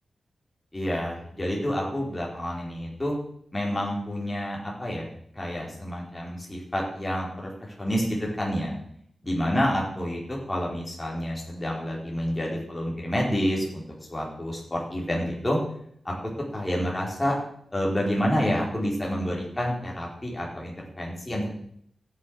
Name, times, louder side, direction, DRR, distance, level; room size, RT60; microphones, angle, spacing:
voice 1, 0.7-3.2 3.5-5.1 5.4-7.5 7.8-8.8 9.2-13.8 14.1-15.6 16.0-16.1 16.5-17.3 17.7-21.5, equal, 15° left, -3 dB, 4.5 m, -28 dB
14.5 x 9.4 x 6.5 m, 0.68 s
wide cardioid pair, 135°, 0 cm